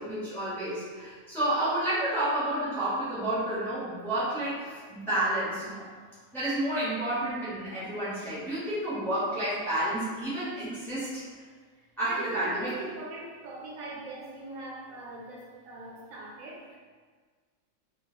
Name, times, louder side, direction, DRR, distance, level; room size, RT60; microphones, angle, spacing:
voice 1, 0.0-5.8 6.3-11.2 12.0-12.7, right 1 dB, ahead, -12 dB, 0.8 m, -30 dB
voice 2, 11.8-16.8, right 2 dB, 80° right, -3 dB, 1.0 m, -41 dB
2.3 x 2.3 x 3.0 m, 1.5 s
omnidirectional pair, 1.4 m